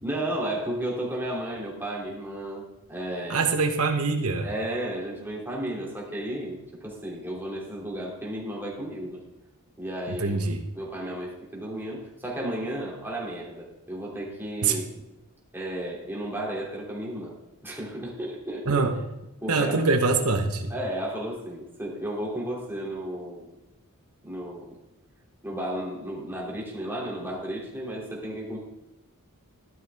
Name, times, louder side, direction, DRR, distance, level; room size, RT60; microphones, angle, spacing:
voice 1, 0.0-2.6 2.9-3.5 4.4-6.6 6.8-9.2 9.8-10.4 10.7-15.0 15.5-17.4 17.6-18.8 19.4-19.8 20.7-23.5 24.2-24.8 25.4-28.6, right 1 dB, 10° right, -3 dB, 3.0 m, -33 dB
voice 2, 3.3-4.5 10.1-10.6 14.6-14.8 18.6-18.9 19.5-20.7, right 4 dB, 75° right, 5 dB, 1.2 m, -24 dB
14.0 x 11.5 x 3.6 m, 0.94 s
head